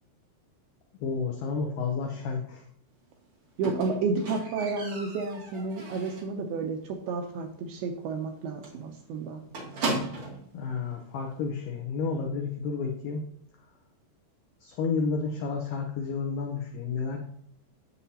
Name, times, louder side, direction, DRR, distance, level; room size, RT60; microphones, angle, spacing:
voice 1, 1.0-2.6 10.5-13.2 14.6-17.2, left 5 dB, 75° left, 1 dB, 2.0 m, -31 dB
Squeak, 3.6-6.4 6.7-7.1 7.4-7.5 7.9-8.0 8.2-8.4 8.6-10.5 11.3-11.4, right 2 dB, 45° right, 2.3 m, -36 dB
voice 2, 3.6-9.4, right 4 dB, 80° right, 4 dB, 2.4 m, -31 dB
9.9 x 7.6 x 2.8 m, 0.68 s
omnidirectional pair, 4.9 m